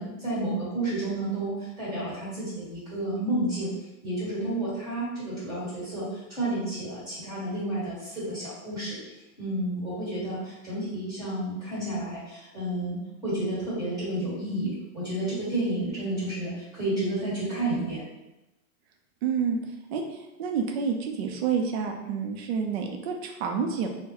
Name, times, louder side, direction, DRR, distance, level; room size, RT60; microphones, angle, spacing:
voice 1, 0.0-3.7 4.0-9.0 9.4-18.0, right 1 dB, 10° right, -9 dB, 1.4 m, -31 dB
voice 2, 19.2-19.6 19.9-23.9, right 6 dB, 50° right, 3 dB, 0.4 m, -29 dB
3.7 x 2.1 x 2.9 m, 0.97 s
supercardioid pair, 180°, 43 cm